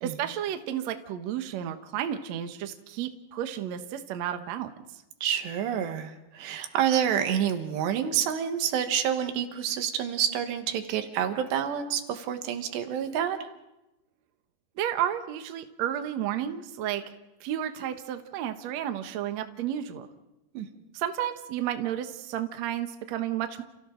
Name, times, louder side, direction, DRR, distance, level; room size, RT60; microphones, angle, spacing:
voice 1, 0.0-4.7 14.8-17.0 17.4-20.1 20.9-23.6, right 10 dB, 70° right, 8 dB, 1.7 m, -32 dB
voice 2, 5.2-13.4 20.6-20.7, right 9 dB, 90° right, 7 dB, 3.6 m, -28 dB
29.5 x 28.5 x 3.9 m, 0.95 s
omnidirectional pair, 4.7 m